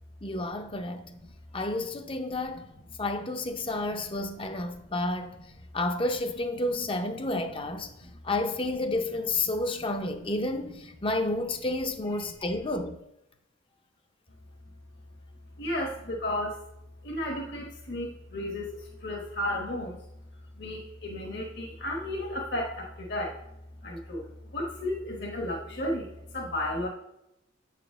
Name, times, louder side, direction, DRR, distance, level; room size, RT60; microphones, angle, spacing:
voice 1, 0.2-1.1 1.5-2.7 3.0-5.4 5.7-7.9 8.2-13.0, left 2 dB, 25° left, 0.7 m, -30 dB
voice 2, 15.6-16.6 17.0-20.0 20.5-23.4 23.8-24.3 24.5-26.9, left 1 dB, 60° left, 1.3 m, -33 dB
7.4 x 5.0 x 6.0 m
head